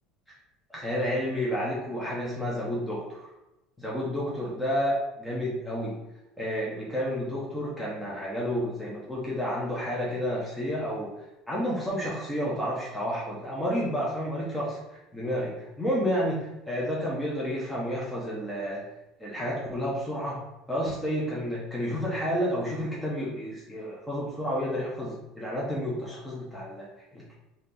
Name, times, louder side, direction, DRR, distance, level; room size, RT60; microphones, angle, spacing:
voice 1, 0.7-3.2 3.8-6.0 6.4-11.1 11.5-14.8 15.1-18.8 19.2-20.4 20.7-27.3, equal, 5° left, -6 dB, 0.9 m, -30 dB
3.6 x 2.9 x 3.7 m, 0.95 s
cardioid pair, 140°, 0 cm